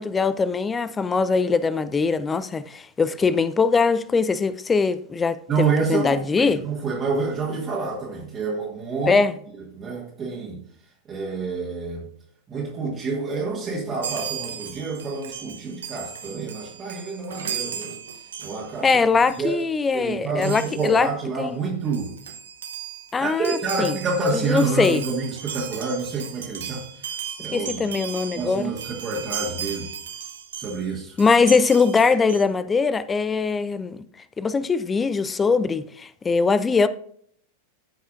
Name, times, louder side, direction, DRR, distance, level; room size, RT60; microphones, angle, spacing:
voice 1, 0.0-6.6 9.1-9.3 18.8-21.1 21.4-21.5 23.1-24.0 24.3-25.0 27.5-28.7 31.2-34.0 34.4-36.9, left 4 dB, 15° left, 0.5 m, -21 dB
voice 2, 5.5-9.2 9.8-10.6 11.1-12.1 12.5-18.0 18.4-18.9 19.4-19.6 19.9-22.1 23.2-27.8 28.4-29.9 30.6-31.2, right 4 dB, 25° right, 1.8 m, -28 dB
Chime, 14.0-19.0 19.3-19.5 20.4-21.0 21.6-21.7 21.8-30.8 31.2-32.4, right 8 dB, 65° right, 0.9 m, -36 dB
14.0 x 5.6 x 2.5 m
figure-of-eight pair, 90°, 0 cm